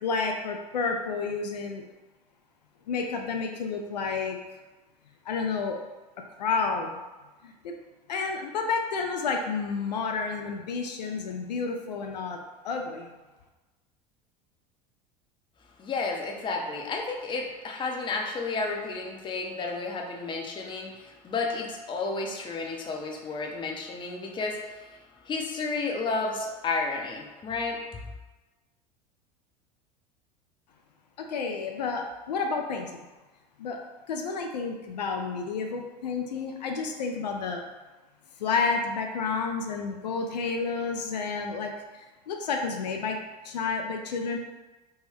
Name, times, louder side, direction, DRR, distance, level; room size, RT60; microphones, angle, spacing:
voice 1, 0.0-1.8 2.9-4.4 5.3-5.8 6.4-7.0 7.4-7.7 8.1-12.4 12.6-13.1 31.2-33.1 33.6-33.8 34.1-37.6 38.4-43.2 43.4-44.4, left 4 dB, 80° left, 3 dB, 0.4 m, -30 dB
voice 2, 15.8-28.1, left 3 dB, 25° left, 1 dB, 0.5 m, -32 dB
3.2 x 2.1 x 3.4 m, 1.2 s
figure-of-eight pair, 75°, 21 cm